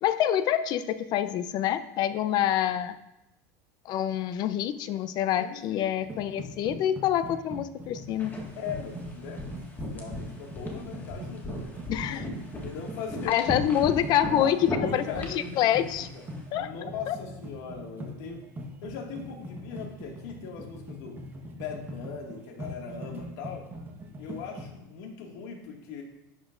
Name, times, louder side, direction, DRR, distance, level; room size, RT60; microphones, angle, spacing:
voice 1, 0.0-3.0 3.9-8.3 11.9-12.2 13.3-16.1 16.5-16.7 17.1-17.2, left 11 dB, 45° left, 13 dB, 0.6 m, -26 dB
voice 2, 5.4-5.9 8.6-9.5 9.9-11.8 12.1-12.2 12.6-13.4 14.4-16.2 16.6-18.4 18.8-21.2 21.5-23.7 24.2-26.0, left 6 dB, 70° left, 1 dB, 2.1 m, -39 dB
sound 1, 6.0-24.7, equal, 20° right, 1.3 m, -41 dB
sound 2, 8.2-16.4, left 1 dB, 20° left, 1.8 m, -38 dB
11.0 x 8.7 x 2.6 m, 0.90 s
supercardioid pair, 125°, 10 cm